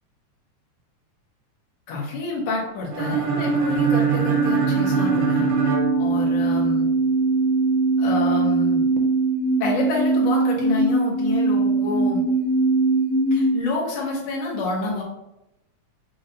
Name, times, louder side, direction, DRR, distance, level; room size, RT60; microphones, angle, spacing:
voice 1, 1.9-5.5 6.0-6.9 8.0-8.9 9.6-12.2 13.3-15.0, left 3 dB, 55° left, -4 dB, 1.6 m, -28 dB
sound 1, 2.9-6.8, right 6 dB, 65° right, 2.1 m, -23 dB
sound 2, 4.0-13.6, right 3 dB, 85° right, 2.2 m, -21 dB
5.3 x 3.2 x 2.7 m, 0.88 s
omnidirectional pair, 3.5 m